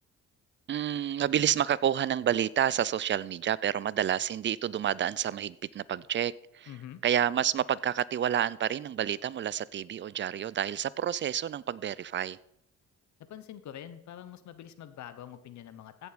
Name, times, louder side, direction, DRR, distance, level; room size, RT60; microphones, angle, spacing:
voice 1, 0.7-6.7 7.0-12.4, right 10 dB, 40° right, 0.4 m, -29 dB
voice 2, 6.7-7.0 13.2-16.1, left 10 dB, 70° left, 1.0 m, -45 dB
16.0 x 7.0 x 4.1 m
cardioid pair, 90°, 30 cm